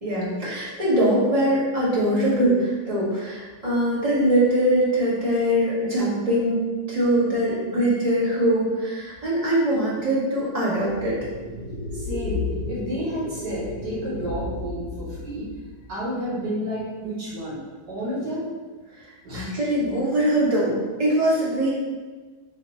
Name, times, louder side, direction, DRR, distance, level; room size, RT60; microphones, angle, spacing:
voice 1, 0.0-6.6 6.9-11.1 19.3-21.7, right 1 dB, 25° right, -8 dB, 1.1 m, -22 dB
sound 1, 10.8-15.7, left 3 dB, 45° left, 1.1 m, -33 dB
voice 2, 11.9-15.5 15.9-18.5 19.2-19.5, equal, 75° right, -9 dB, 2.1 m, -31 dB
3.8 x 2.8 x 4.1 m, 1.3 s
omnidirectional pair, 1.7 m